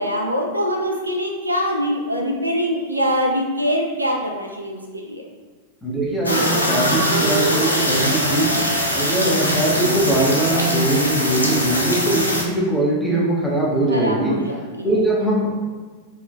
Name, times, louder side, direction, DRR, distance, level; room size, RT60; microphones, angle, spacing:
voice 1, 0.0-5.3 11.4-11.7 13.9-15.0, equal, 85° right, 1 dB, 0.3 m, -24 dB
voice 2, 5.8-8.5 8.9-14.3 14.8-15.5, right 1 dB, 5° left, -6 dB, 0.8 m, -21 dB
sound 1, 6.2-12.4, equal, 85° left, 0.4 m, -21 dB
3.5 x 2.4 x 2.2 m, 1.4 s
figure-of-eight pair, 90°, 0 cm